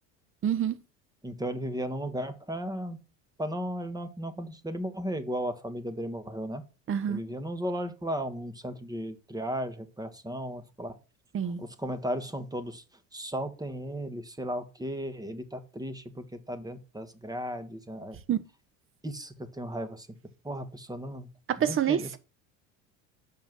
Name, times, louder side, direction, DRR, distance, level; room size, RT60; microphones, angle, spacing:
voice 1, 0.4-0.8 6.9-7.2 11.3-11.6 18.3-18.4 21.5-22.2, right 9 dB, 30° right, 1.0 m, -27 dB
voice 2, 1.2-3.0 3.4-6.6 7.1-11.0 11.6-12.8 13.1-18.2 19.0-20.1 20.4-21.3 21.6-22.1, equal, 10° right, 1.4 m, -35 dB
7.1 x 5.7 x 6.1 m
hypercardioid pair, 75°, 40 cm